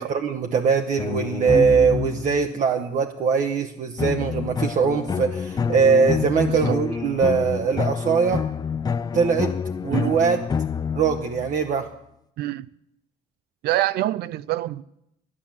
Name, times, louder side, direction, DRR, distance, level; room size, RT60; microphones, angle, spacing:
voice 1, 0.0-8.4 9.1-9.5 9.8-10.4 10.9-11.9, right 6 dB, 50° right, 0.9 m, -21 dB
sound 1, 1.0-2.6 4.0-11.7, left 6 dB, 25° left, 0.4 m, -27 dB
voice 2, 12.4-12.7 13.6-14.8, right 15 dB, 70° right, 0.5 m, -26 dB
11.5 x 9.7 x 7.3 m
cardioid pair, 110°, 17 cm